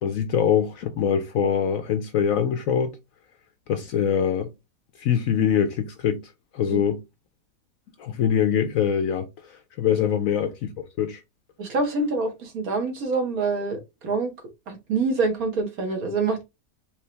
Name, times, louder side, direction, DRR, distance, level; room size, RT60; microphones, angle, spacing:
voice 1, 0.0-2.9 3.7-4.5 5.0-7.0 8.0-11.2, left 8 dB, 70° left, 0.8 m, -24 dB
voice 2, 11.6-14.3 14.7-16.4, right 3 dB, 60° right, 1.7 m, -26 dB
4.7 x 2.8 x 3.2 m
omnidirectional pair, 1.8 m